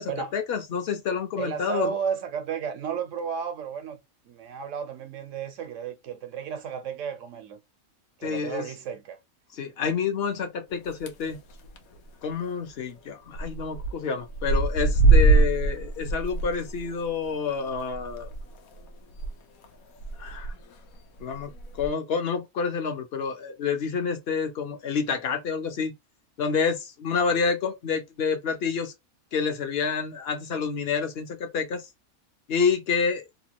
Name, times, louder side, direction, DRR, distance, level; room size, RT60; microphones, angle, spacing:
voice 1, 0.0-1.9 8.2-8.6 9.6-11.4 12.2-18.3 20.2-20.5 21.2-21.5 21.8-25.9 26.4-28.9 29.3-31.8 32.5-33.3, left 5 dB, 55° left, 0.8 m, -28 dB
voice 2, 1.4-4.0 4.2-7.6 8.2-9.2, right 7 dB, 65° right, 1.0 m, -33 dB
sound 1, 10.8-11.3 11.6-11.9 12.2-12.3 12.5-12.6 13.3-13.9 14.2-19.3 19.6-19.7 20.0-20.5 21.2-21.9, right 3 dB, 85° left, 1.1 m, -23 dB
2.9 x 2.2 x 2.8 m
omnidirectional pair, 1.5 m